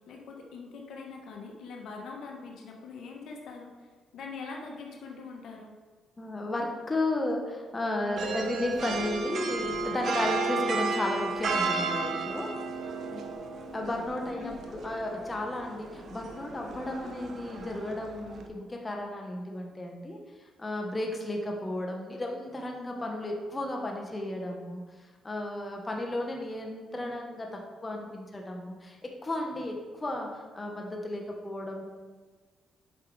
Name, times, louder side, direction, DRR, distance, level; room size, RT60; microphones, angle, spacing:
voice 1, 0.1-3.7 4.1-5.8 14.3-14.6, left 4 dB, 75° left, 1 dB, 1.1 m, -42 dB
voice 2, 6.2-12.6 13.1-13.3 13.7-20.2 20.6-24.8 25.2-31.8, left 1 dB, 20° left, 1 dB, 1.1 m, -34 dB
sound 1, 8.2-18.5, right 4 dB, 60° right, 0.8 m, -33 dB
8.4 x 5.6 x 3.3 m, 1.4 s
cardioid pair, 90°, 0 cm